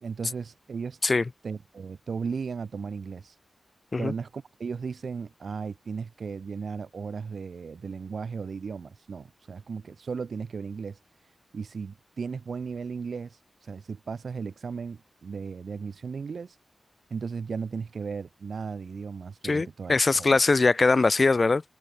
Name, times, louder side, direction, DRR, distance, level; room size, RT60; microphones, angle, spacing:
voice 1, 0.0-1.0 1.4-3.4 4.0-11.0 11.5-16.6 17.1-20.3, right 5 dB, 75° right, 2.7 m, -36 dB
voice 2, 19.4-21.6, left 3 dB, 50° left, 0.5 m, -22 dB
cardioid pair, 40°, 0 cm